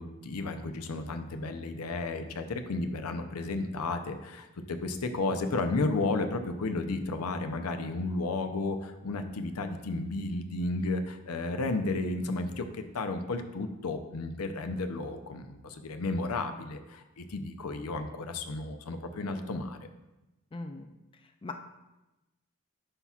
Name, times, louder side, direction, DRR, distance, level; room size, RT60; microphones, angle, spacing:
voice 1, 0.0-19.8, left 2 dB, 85° left, 7 dB, 0.6 m, -33 dB
voice 2, 20.5-21.6, left 2 dB, 25° left, 6 dB, 0.4 m, -42 dB
9.9 x 5.6 x 2.4 m, 0.99 s
head